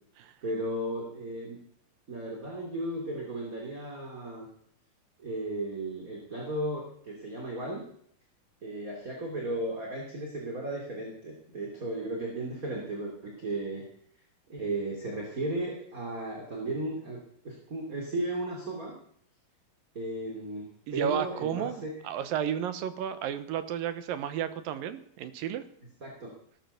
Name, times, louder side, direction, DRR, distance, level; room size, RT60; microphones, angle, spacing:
voice 1, 0.4-1.6 2.1-4.5 5.2-7.9 8.6-13.8 14.5-19.0 19.9-21.9 26.0-26.3, right 1 dB, 25° right, 1 dB, 2.9 m, -35 dB
voice 2, 20.9-25.7, right 9 dB, 75° right, 12 dB, 2.7 m, -32 dB
16.5 x 12.5 x 6.8 m, 0.66 s
omnidirectional pair, 4.4 m